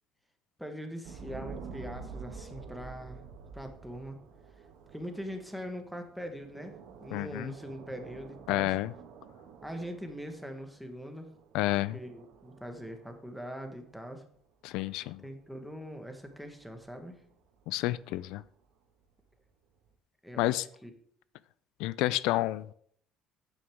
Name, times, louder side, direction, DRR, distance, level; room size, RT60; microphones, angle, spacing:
voice 1, 0.6-3.2 3.5-4.2 4.9-8.7 9.6-11.3 11.9-14.2 15.2-17.2 20.2-20.9, equal, ahead, 5 dB, 1.3 m, -42 dB
sound 1, 1.0-13.9 15.5-18.6 19.9-20.0, right 5 dB, 75° right, 1.7 m, -49 dB
voice 2, 7.1-7.5 8.5-8.9 11.5-12.0 14.6-15.2 17.7-18.4 20.4-20.7 21.8-22.7, left 17 dB, 85° left, 18 dB, 0.4 m, -30 dB
11.0 x 9.0 x 3.5 m, 0.63 s
cardioid pair, 160°, 0 cm